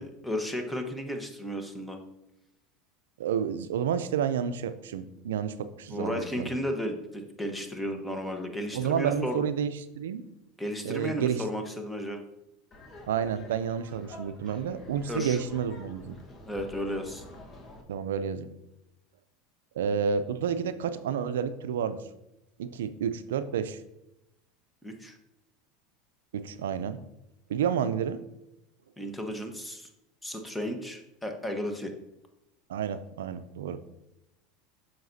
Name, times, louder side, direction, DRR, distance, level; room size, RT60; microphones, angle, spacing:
voice 1, 0.0-2.0 5.9-9.4 10.6-12.2 15.0-15.4 16.4-17.2 24.8-25.2 29.0-29.9 30.2-31.9, equal, 10° left, 4 dB, 1.1 m, -34 dB
voice 2, 3.2-6.6 8.7-10.2 10.8-11.4 13.1-16.2 17.9-18.5 19.8-22.0 22.6-23.8 26.3-27.0 27.5-28.2 32.7-33.8, right 8 dB, 85° right, 12 dB, 0.4 m, -30 dB
Laughter, 12.7-17.8, left 2 dB, 35° left, 1.3 m, -48 dB
7.6 x 5.8 x 2.7 m, 0.88 s
hypercardioid pair, 100°, 0 cm